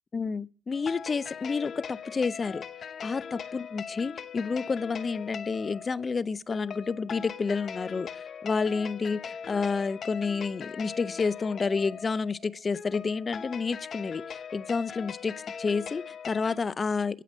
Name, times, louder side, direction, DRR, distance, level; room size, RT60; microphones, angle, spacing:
voice 1, 0.1-2.6 3.0-3.2 3.5-17.2, left 4 dB, 35° left, 0.5 m, -30 dB
sound 1, 0.7-16.6, left 7 dB, 55° left, 0.9 m, -40 dB
16.5 x 5.8 x 5.2 m
cardioid pair, 90°, 0 cm